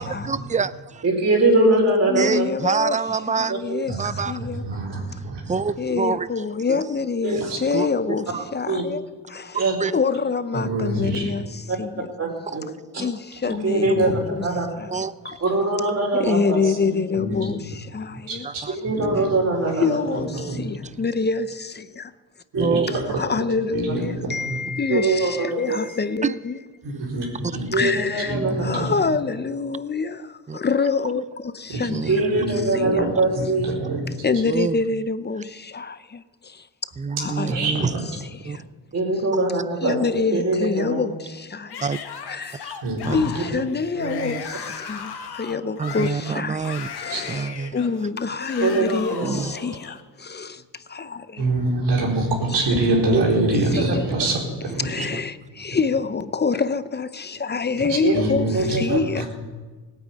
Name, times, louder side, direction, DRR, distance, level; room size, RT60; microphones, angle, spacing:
voice 1, 0.0-1.0 2.2-4.4 5.5-6.8 7.7-7.9 8.3-8.4 9.5-10.0 12.5-12.6 13.0-13.1 14.9-15.1 16.2-16.3 18.4-18.7 20.4-20.5 22.6-22.9 26.2-26.3 30.5-30.6 31.9-32.2 34.4-34.8 37.0-38.0 38.5-38.6 39.3-39.4 41.8-42.0 42.7-42.8 43.1-43.2 45.8-46.9 47.3-47.8 49.2-49.6 55.0-55.2, right 5 dB, 20° right, 0.5 m, -26 dB
voice 2, 1.0-2.5 3.5-3.6 7.2-7.5 8.7-8.8 9.6-9.8 11.7-11.8 12.2-12.6 13.4-14.7 15.4-17.0 18.8-20.2 22.5-23.0 24.9-25.8 27.7-28.8 32.1-33.7 38.9-41.0 44.0-44.3 48.6-49.4 53.1-53.4 58.0-58.1 58.5-59.0, right 2 dB, 40° right, 4.3 m, -22 dB
voice 3, 2.1-3.0 3.4-4.6 5.8-9.0 9.3-9.6 9.9-12.1 13.0-14.5 14.8-14.9 15.2-15.4 16.1-18.5 19.8-22.1 23.2-26.6 27.7-28.4 28.6-32.4 32.7-33.1 34.2-36.6 37.2-37.7 38.4-38.6 39.8-41.8 42.3-42.7 43.1-47.5 47.7-50.6 50.9-51.4 53.7-54.0 54.8-59.2, left 4 dB, 25° left, 0.6 m, -26 dB
voice 4, 3.9-5.6 7.5-7.6 10.5-11.2 13.9-14.2 17.1-17.4 18.3-18.4 18.9-19.2 20.5-20.7 22.5-23.2 23.7-24.6 26.8-27.7 28.3-28.9 31.7-32.5 32.8-33.1 33.4-34.1 37.5-38.0 42.8-43.3 47.1-47.2 51.4-55.0 55.7-55.8 57.8-59.2, right 2 dB, 85° right, 4.4 m, -26 dB
Yell / Screaming, 41.7-50.0, left 7 dB, 70° left, 1.6 m, -36 dB
18.0 x 9.2 x 8.5 m
cardioid pair, 95°, 41 cm